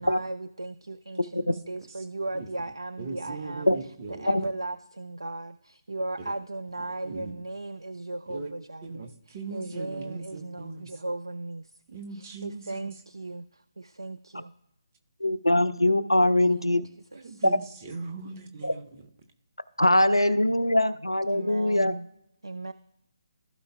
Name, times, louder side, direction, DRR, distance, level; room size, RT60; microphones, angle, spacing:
voice 1, 0.0-3.7 4.2-9.1 9.5-11.7 12.1-14.5 16.2-16.8 17.1-17.4 21.3-22.1 22.4-22.7, right 2 dB, 75° right, 13 dB, 0.3 m, -37 dB
voice 2, 3.0-4.5 6.2-6.3 7.0-7.3 8.3-8.5 8.8-11.0 11.9-12.9 17.1-19.0, right 3 dB, 30° right, 5 dB, 1.0 m, -39 dB
voice 3, 15.2-16.8 17.4-17.6 18.6-18.7 19.8-22.0, left 1 dB, 90° left, 15 dB, 0.5 m, -22 dB
15.5 x 5.3 x 2.3 m, 0.80 s
figure-of-eight pair, 145°, 3 cm